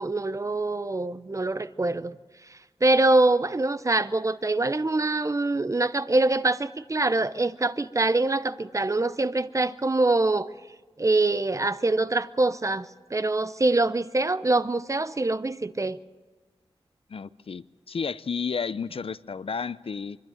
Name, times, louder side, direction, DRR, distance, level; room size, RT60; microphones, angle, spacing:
voice 1, 0.0-2.2 2.8-10.5 11.0-16.0, right 2 dB, 30° right, 0.7 m, -24 dB
voice 2, 17.1-20.2, left 5 dB, 65° left, 0.5 m, -32 dB
24.5 x 12.5 x 9.1 m
wide cardioid pair, 70°, 11 cm